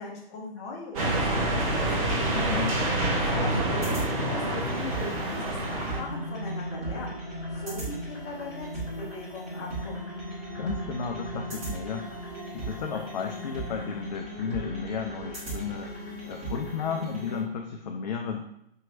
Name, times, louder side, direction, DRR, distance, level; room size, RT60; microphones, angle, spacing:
voice 1, 0.0-1.9 2.9-10.2, left 2 dB, 30° left, -2 dB, 1.0 m, -40 dB
sound 1, 0.9-6.0, right 1 dB, 35° right, 0.9 m, -27 dB
sound 2, 2.0-17.4, right 1 dB, 20° right, 1.5 m, -37 dB
voice 2, 2.3-2.8 10.6-12.1 12.5-18.4, left 6 dB, 50° left, 2 dB, 0.5 m, -33 dB
5.5 x 2.9 x 2.6 m, 0.78 s
figure-of-eight pair, 120°, 29 cm